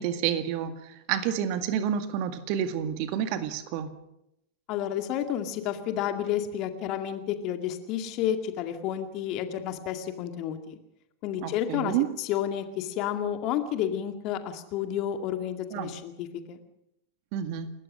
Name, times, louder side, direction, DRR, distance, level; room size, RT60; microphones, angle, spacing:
voice 1, 0.0-3.9 11.4-12.1 15.7-15.9 17.3-17.7, right 9 dB, 45° right, 10 dB, 1.9 m, -29 dB
voice 2, 4.7-10.8 11.2-16.6, left 10 dB, 40° left, 7 dB, 2.2 m, -31 dB
29.0 x 14.0 x 6.4 m, 0.84 s
figure-of-eight pair, 90°, 0 cm